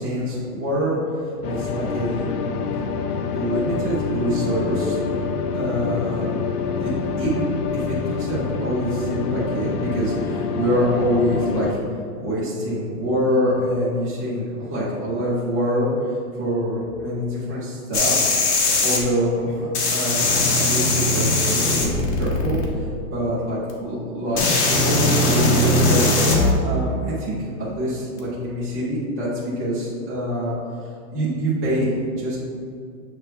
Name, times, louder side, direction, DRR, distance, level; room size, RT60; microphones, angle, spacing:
voice 1, 0.0-2.2 3.3-5.0 5.5-6.3 6.8-6.9 7.2-11.8 12.2-18.3 18.7-26.1 26.6-30.5 30.8-32.4, equal, 15° right, -11 dB, 0.4 m, -25 dB
sound 1, 1.4-11.7, left 5 dB, 80° left, 0.7 m, -26 dB
sound 2, 17.9-19.0 19.7-22.7 23.7-23.8 24.4-26.5 28.2-28.3, left 2 dB, 45° left, 1.1 m, -19 dB
7.6 x 3.1 x 4.3 m, 2.4 s
hypercardioid pair, 175°, 45 cm